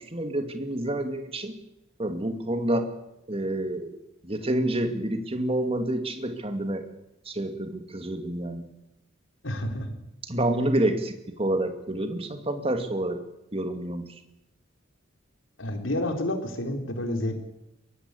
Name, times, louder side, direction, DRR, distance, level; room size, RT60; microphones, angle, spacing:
voice 1, 0.0-1.5 2.0-2.9 3.3-4.0 4.2-6.9 7.3-8.6 10.2-13.2 13.5-14.1, right 1 dB, 30° right, 7 dB, 2.4 m, -28 dB
voice 2, 9.4-10.0 15.6-17.4, left 1 dB, 80° left, 5 dB, 3.9 m, -29 dB
23.0 x 18.0 x 8.3 m, 0.89 s
head